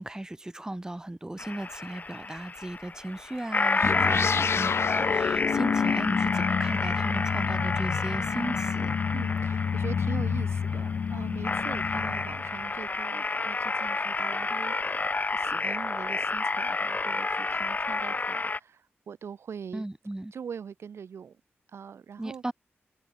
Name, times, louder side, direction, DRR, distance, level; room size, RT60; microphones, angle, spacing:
voice 1, 0.0-9.0 19.7-20.3 22.2-22.5, right 1 dB, 15° right, 0.8 m, -36 dB
sound 1, 1.4-18.6, left 3 dB, 40° left, 1.4 m, -30 dB
sound 2, 3.8-12.6, left 6 dB, 75° left, 0.8 m, -29 dB
voice 2, 3.8-4.1 9.1-19.9 20.3-21.4 21.7-22.4, right 7 dB, 80° right, 1.3 m, -42 dB
cardioid pair, 60°, 4 cm